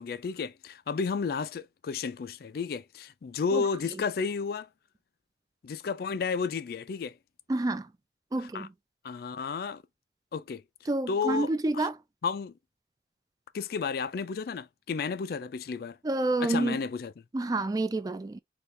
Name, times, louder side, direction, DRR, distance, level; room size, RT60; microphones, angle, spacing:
voice 1, 0.0-4.7 5.6-7.1 8.4-8.7 9.0-9.8 10.3-10.6 11.1-11.9 12.2-12.5 13.5-16.0 16.4-17.1, left 5 dB, 55° left, 0.3 m, -32 dB
voice 2, 7.5-7.9 8.3-8.7 10.9-12.0 16.0-16.8 17.3-18.4, right 2 dB, 20° right, 0.3 m, -28 dB
4.3 x 2.4 x 3.2 m
head